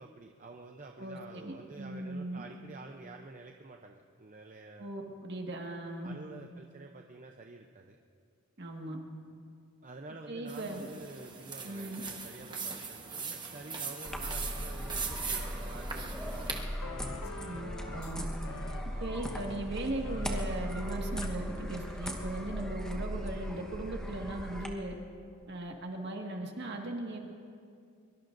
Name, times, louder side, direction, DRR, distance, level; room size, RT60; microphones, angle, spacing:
voice 1, 0.0-4.9 6.0-8.0 9.8-16.6 18.9-19.2, right 3 dB, 35° right, 2 dB, 0.6 m, -49 dB
voice 2, 1.0-2.4 4.8-6.1 8.6-9.0 10.3-10.9 11.6-12.0 17.4-18.3 19.0-24.9 25.5-27.2, right 2 dB, 50° right, 1 dB, 1.8 m, -38 dB
sound 1, 10.5-16.6, right 5 dB, 20° right, 1.2 m, -40 dB
sound 2, 14.0-24.7, equal, 5° left, 1.1 m, -38 dB
sound 3, 16.8-18.2 18.4-18.8 19.2-19.6 20.0-20.4 20.8-21.4, left 3 dB, 85° left, 0.8 m, -45 dB
23.5 x 23.0 x 2.6 m, 2.4 s
head